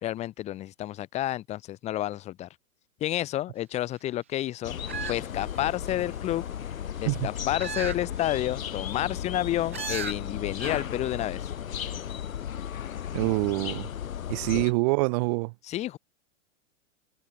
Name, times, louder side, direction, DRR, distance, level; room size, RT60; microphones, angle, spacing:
voice 1, 0.0-2.5 3.0-4.8 5.1-6.4 7.0-11.5 14.5-14.7 15.6-16.0, left 14 dB, 15° left, 2.9 m, -30 dB
sound 1, 4.6-14.7, left 9 dB, 90° left, 5.3 m, -35 dB
sound 2, 4.9-6.0 7.6-8.0 8.4-8.5 9.7-10.1 10.6-10.9 11.2-11.3, right 8 dB, 10° right, 0.4 m, -36 dB
voice 2, 13.1-13.9 14.3-15.5, right 27 dB, 30° right, 3.0 m, -26 dB
supercardioid pair, 175°, 40 cm